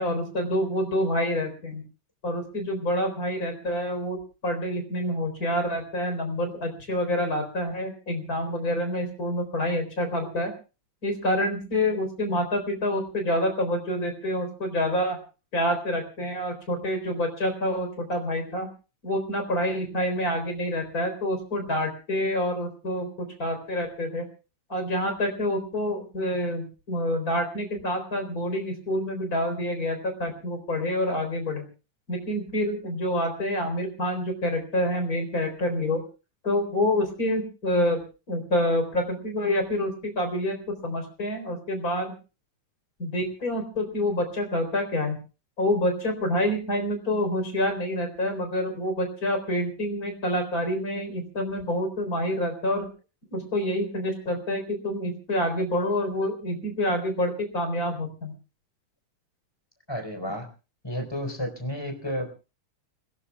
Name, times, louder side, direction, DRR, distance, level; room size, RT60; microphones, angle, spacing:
voice 1, 0.0-1.8 2.2-4.2 4.4-10.5 11.0-15.2 15.5-18.7 19.0-24.3 24.7-31.6 32.1-36.0 36.4-38.0 38.3-42.1 43.0-45.2 45.6-52.9 53.3-58.3, left 1 dB, 30° left, 4 dB, 4.3 m, -27 dB
voice 2, 59.9-60.5 60.8-62.3, equal, 10° left, 4 dB, 4.1 m, -31 dB
29.5 x 17.5 x 2.4 m, 0.34 s
omnidirectional pair, 3.3 m